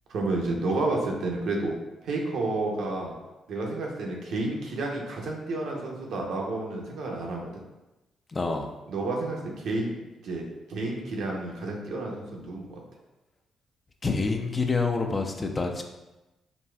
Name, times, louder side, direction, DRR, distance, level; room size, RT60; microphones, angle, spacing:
voice 1, 0.1-1.7 2.0-3.1 3.5-7.6 8.9-9.9 10.2-12.8, right 2 dB, 70° right, -1 dB, 0.6 m, -30 dB
voice 2, 8.3-8.7 14.0-15.8, left 4 dB, 35° left, 4 dB, 0.4 m, -27 dB
3.9 x 2.2 x 2.2 m, 1.0 s
hypercardioid pair, 50°, 0 cm